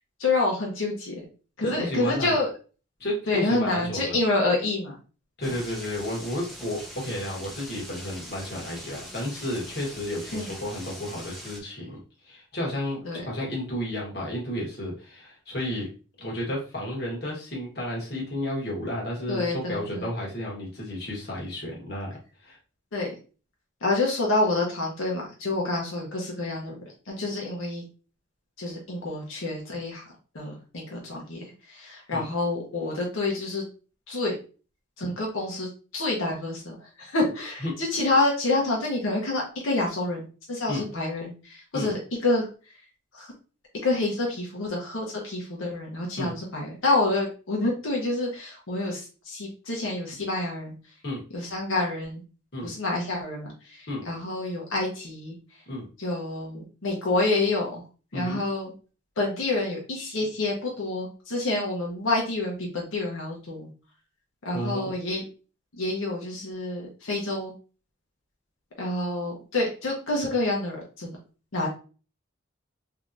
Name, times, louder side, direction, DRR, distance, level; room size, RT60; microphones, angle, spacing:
voice 1, 0.2-1.2 1.6-2.5 3.3-4.9 5.5-5.6 10.3-10.5 13.0-13.2 19.3-20.1 22.9-23.1 23.8-26.8 27.1-27.8 28.6-30.0 30.3-33.6 34.1-34.3 35.0-42.5 43.1-43.3 43.8-50.7 51.3-52.2 52.6-55.3 56.0-57.8 58.1-58.7 59.2-63.7 64.4-65.2 65.8-67.5 68.8-71.2 71.5-71.7, left 2 dB, 90° left, -2 dB, 0.9 m, -28 dB
voice 2, 1.6-2.4 3.0-4.2 5.4-15.9 16.2-22.1 22.4-22.6 32.1-32.2 37.6-37.7 40.7-40.8 41.7-41.9 46.2-46.3 51.0-51.2 52.5-52.7 53.9-54.1 55.7-55.9 58.1-58.4 64.5-64.9, left 1 dB, 55° left, -3 dB, 1.2 m, -32 dB
sound 1, 5.4-11.6, equal, ahead, 0.5 m, -42 dB
3.3 x 2.8 x 2.5 m, 0.36 s
head